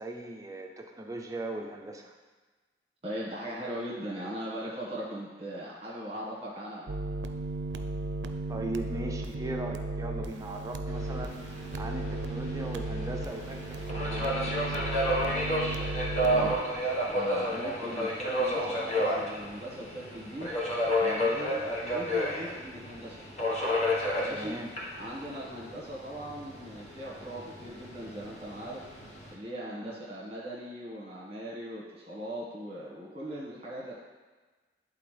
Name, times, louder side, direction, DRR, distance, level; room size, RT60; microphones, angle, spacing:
voice 1, 0.0-2.1 8.5-15.2 24.3-24.7 29.8-30.0, right 1 dB, 20° right, 2 dB, 0.5 m, -39 dB
voice 2, 3.0-6.9 16.2-20.5 21.0-23.3 24.2-24.6 24.9-28.8 29.3-34.0, equal, 35° right, -6 dB, 1.4 m, -39 dB
sound 1, 6.9-16.6, right 2 dB, 85° right, 0.4 m, -35 dB
Subway metro underground, 10.9-29.3, equal, 40° left, 1.3 m, -32 dB
10.5 x 3.9 x 3.3 m, 1.3 s
head